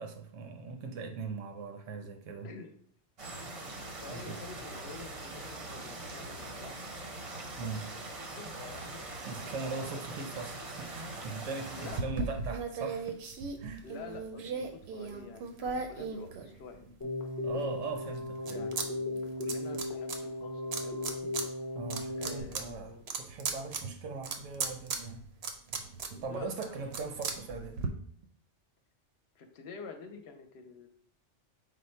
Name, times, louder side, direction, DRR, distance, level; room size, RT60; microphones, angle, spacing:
voice 1, 0.0-2.5 4.1-4.4 7.6-7.8 9.3-13.2 13.6-13.8 17.4-18.7 21.7-25.3 26.2-27.8, right 4 dB, 90° right, 4 dB, 1.1 m, -40 dB
sound 1, 3.2-12.0, right 2 dB, 35° right, 0.6 m, -42 dB
voice 2, 4.0-6.8 7.4-7.7 8.4-9.0 9.4-10.0 11.7-12.0 13.8-16.9 17.5-17.8 18.4-21.3 22.2-23.1 26.0-26.8 27.2-27.3 29.3-30.9, left 5 dB, 65° left, 6 dB, 0.8 m, -49 dB
sound 2, 11.9-17.0 17.5-18.9 19.1-20.2 20.7-21.5 21.8-27.9, right 4 dB, 65° right, 0.8 m, -37 dB
Keyboard (musical), 17.0-22.4, left 2 dB, 25° left, 0.4 m, -36 dB
5.1 x 2.1 x 4.3 m, 0.63 s
omnidirectional pair, 1.3 m